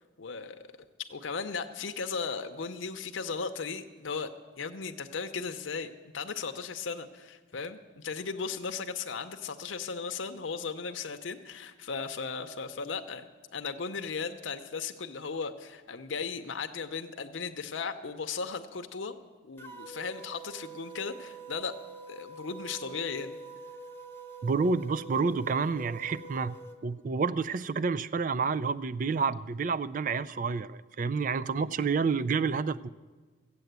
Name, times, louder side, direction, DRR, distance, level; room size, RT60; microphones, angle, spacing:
voice 1, 0.2-0.6 1.0-4.3 4.6-13.3 13.5-19.2 19.4-21.8 22.1-23.4, left 5 dB, 85° left, 7 dB, 0.7 m, -36 dB
sound 1, 19.6-26.8, right 3 dB, 10° left, 0.9 m, -45 dB
voice 2, 24.4-26.6 26.8-32.9, right 5 dB, 45° right, 16 dB, 0.3 m, -29 dB
14.5 x 8.3 x 8.0 m, 1.4 s
head